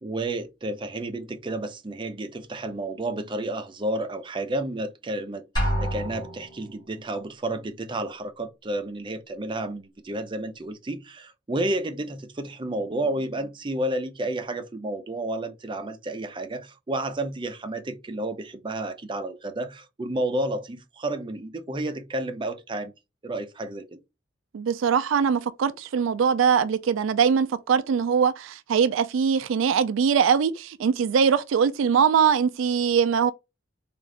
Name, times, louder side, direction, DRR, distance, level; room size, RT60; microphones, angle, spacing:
voice 1, 0.0-22.9 23.2-24.0, right 1 dB, 25° right, 0.5 m, -31 dB
Drum, 5.6-6.8, equal, 25° left, 1.9 m, -27 dB
voice 2, 24.5-33.3, right 7 dB, 85° right, 0.4 m, -22 dB
3.6 x 2.5 x 3.2 m
head